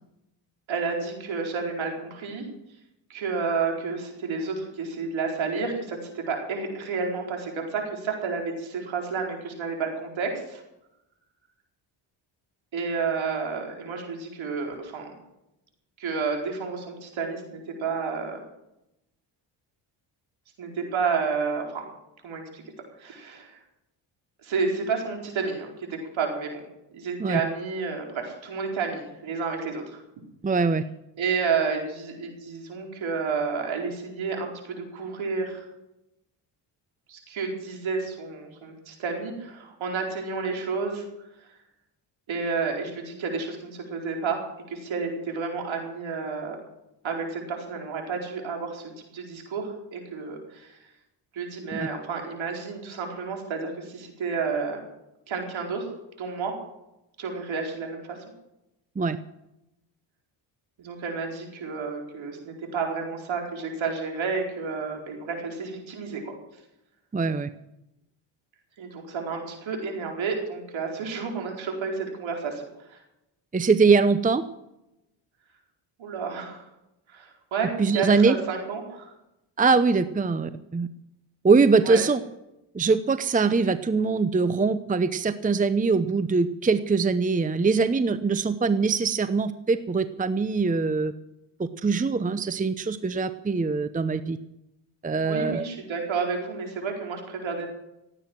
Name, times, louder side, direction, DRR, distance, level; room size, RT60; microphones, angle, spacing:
voice 1, 0.7-2.4 3.1-10.6 12.7-15.1 16.0-18.4 20.6-21.9 22.2-22.6 23.0-23.6 24.4-26.5 26.9-30.0 31.2-35.7 37.1-41.0 42.3-44.4 44.7-46.6 47.0-50.8 51.3-54.8 55.3-55.9 56.2-56.5 57.2-58.2 60.8-66.4 68.8-72.6 72.9-73.0 76.0-76.7 77.1-79.1 81.8-82.0 95.2-97.7, right 5 dB, 65° right, 1 dB, 4.6 m, -30 dB
voice 2, 30.4-30.8 51.7-51.9 59.0-59.2 67.1-67.5 73.5-74.4 77.8-78.3 79.6-80.9 81.4-82.2 82.7-91.1 91.6-94.4 95.0-95.7, right 4 dB, 15° right, 12 dB, 0.8 m, -22 dB
17.0 x 9.2 x 7.5 m, 0.89 s
supercardioid pair, 65°, 50 cm